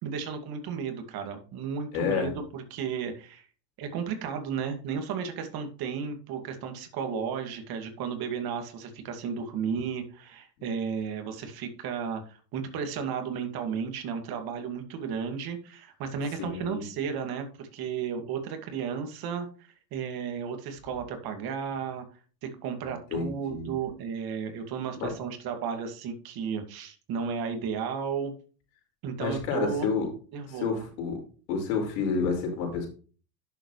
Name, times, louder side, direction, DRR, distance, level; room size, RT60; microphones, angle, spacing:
voice 1, 0.0-3.4 3.8-22.0 22.4-28.3 29.0-29.9 30.3-30.7, right 6 dB, 50° right, 6 dB, 2.4 m, -33 dB
voice 2, 1.9-2.3 16.4-16.8 23.1-23.7 25.0-25.1 29.2-30.1 30.5-31.2 31.5-32.9, left 5 dB, 85° left, 1 dB, 5.1 m, -29 dB
10.5 x 7.4 x 3.2 m, 0.38 s
supercardioid pair, 130°, 47 cm